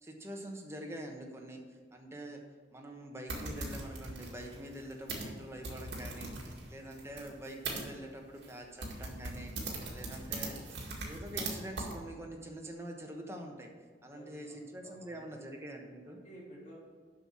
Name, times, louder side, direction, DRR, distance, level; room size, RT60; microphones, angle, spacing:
voice 1, 0.0-2.4 2.7-13.7 14.0-16.2, right 1 dB, 15° right, 1 dB, 1.1 m, -45 dB
sound 1, 3.3-7.8 8.4-8.5 8.8-11.5 11.8-11.9, right 3 dB, 70° right, 2.0 m, -40 dB
voice 2, 14.0-15.3 16.1-16.8, right 1 dB, 45° left, -4 dB, 2.5 m, -54 dB
7.7 x 6.0 x 7.3 m, 1.5 s
head